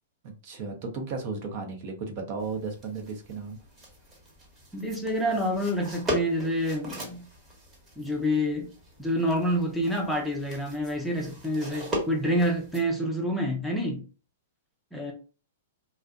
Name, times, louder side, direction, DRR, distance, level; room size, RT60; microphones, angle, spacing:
voice 1, 0.2-3.6, right 4 dB, 50° right, 0.6 m, -35 dB
sound 1, 2.4-12.9, equal, 20° right, 1.0 m, -39 dB
voice 2, 4.7-7.2 8.0-8.7 9.0-14.0 14.9-15.1, equal, ahead, 0.6 m, -27 dB
2.5 x 2.0 x 2.4 m
hypercardioid pair, 120°, 0 cm